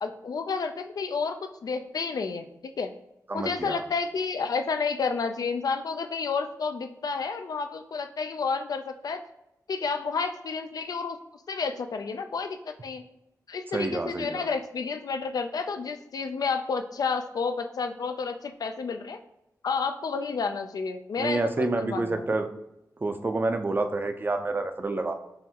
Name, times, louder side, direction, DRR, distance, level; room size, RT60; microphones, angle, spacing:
voice 1, 0.0-2.9 3.3-9.2 9.7-11.2 11.5-13.0 13.5-19.2 19.6-22.3, left 5 dB, 75° left, 7 dB, 0.3 m, -30 dB
voice 2, 3.3-3.8 13.7-14.5 21.2-22.5 23.0-25.1, right 2 dB, 30° right, 7 dB, 0.4 m, -28 dB
5.6 x 2.5 x 2.8 m, 0.85 s
wide cardioid pair, 95°, 7 cm